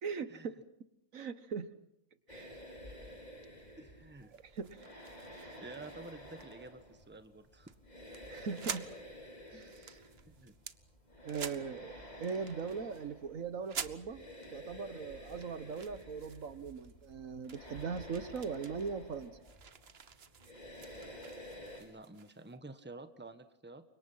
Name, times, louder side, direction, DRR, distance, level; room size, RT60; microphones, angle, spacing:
voice 1, 0.0-0.5 1.1-1.7 2.3-2.6 4.3-4.8 5.3-5.6 8.3-8.9 9.5-10.0 11.2-19.3, right 5 dB, 70° right, 12 dB, 1.7 m, -40 dB
sound 1, 2.3-21.8, equal, 30° left, 4.9 m, -51 dB
voice 2, 3.8-4.4 5.6-7.7 10.3-10.6 21.8-23.8, right 2 dB, 10° right, 9 dB, 1.3 m, -50 dB
sound 2, 4.2-6.7 7.0-7.3 7.7-7.8 8.1-8.9 9.3-10.8 11.3-11.9 12.2-13.1 13.6-14.5 15.0-17.1 17.4-22.5, right 6 dB, 50° right, 1.2 m, -48 dB
30.0 x 25.0 x 5.7 m, 0.82 s
omnidirectional pair, 1.5 m